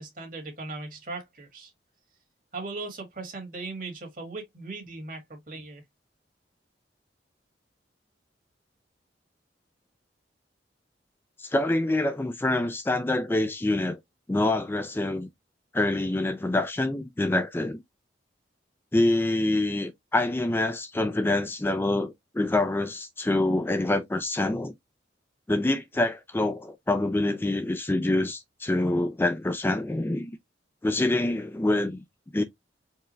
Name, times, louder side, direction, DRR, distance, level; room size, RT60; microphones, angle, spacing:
voice 1, 0.0-1.7 2.5-5.8, right 3 dB, 50° right, 1.9 m, -38 dB
voice 2, 11.4-14.0 14.3-15.3 15.7-17.8 18.9-24.7 25.5-30.3 30.8-32.0 32.3-32.4, left 2 dB, 10° left, 0.3 m, -26 dB
4.6 x 2.3 x 3.1 m
head